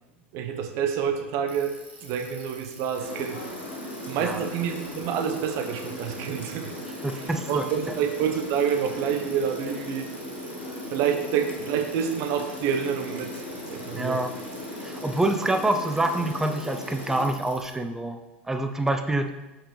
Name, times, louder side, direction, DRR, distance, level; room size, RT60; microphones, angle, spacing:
voice 1, 0.3-1.7 2.0-3.4 4.1-6.7 7.2-10.1 10.9-13.4 13.7-14.2, right 8 dB, 50° right, 5 dB, 1.0 m, -28 dB
Bicycle, 1.5-17.7, right 2 dB, 25° right, 2.0 m, -48 dB
Rain, 2.9-17.3, left 1 dB, 80° left, 2.4 m, -38 dB
voice 2, 7.0-7.7 13.9-14.3 14.8-18.2 18.5-19.3, right 2 dB, 5° right, 6 dB, 0.5 m, -26 dB
7.4 x 5.9 x 3.3 m, 1.0 s
figure-of-eight pair, 80°, 6 cm